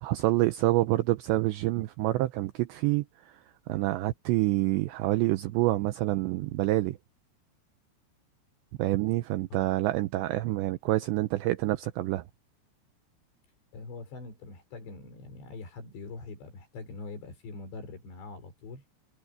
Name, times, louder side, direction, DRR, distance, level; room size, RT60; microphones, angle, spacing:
voice 1, 0.0-3.4 3.7-7.0 8.8-12.2, right 17 dB, 90° right, 2.5 m, -27 dB
voice 2, 13.7-18.8, left 3 dB, 60° left, 7.2 m, -43 dB
omnidirectional pair, 6.0 m